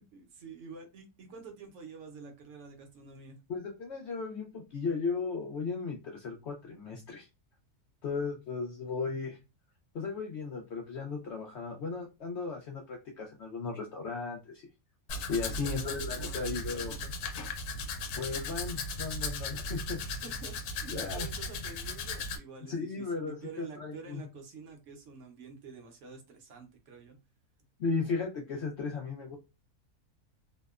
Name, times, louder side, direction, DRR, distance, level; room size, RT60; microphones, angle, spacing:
voice 1, 0.0-3.4 15.6-17.1 20.2-27.2, right 4 dB, 60° right, 4 dB, 0.9 m, -48 dB
voice 2, 3.5-7.3 8.0-9.4 9.9-14.7 15.3-17.0 18.2-20.0 20.9-21.3 22.7-24.2 27.8-29.4, left 4 dB, 65° left, 1 dB, 0.6 m, -36 dB
Domestic sounds home sounds, 15.1-22.4, left 2 dB, 85° left, 1.1 m, -37 dB
2.8 x 2.0 x 2.3 m, 0.27 s
omnidirectional pair, 1.6 m